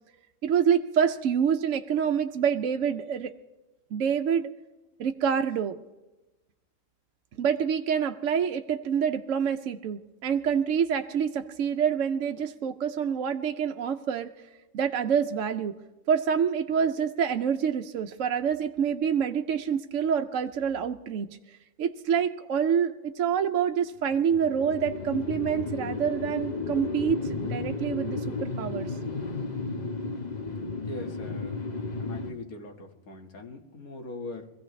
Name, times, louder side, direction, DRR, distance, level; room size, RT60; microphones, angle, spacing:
voice 1, 0.4-3.3 3.9-4.5 5.0-5.8 7.4-14.3 14.7-15.7 16.1-28.9, right 7 dB, 65° right, 6 dB, 1.0 m, -27 dB
sound 1, 24.0-32.3, left 3 dB, 35° left, 1.1 m, -33 dB
voice 2, 30.8-31.6 32.0-34.5, left 2 dB, 80° left, 2 dB, 2.1 m, -41 dB
24.5 x 16.0 x 3.2 m, 1.0 s
omnidirectional pair, 1.5 m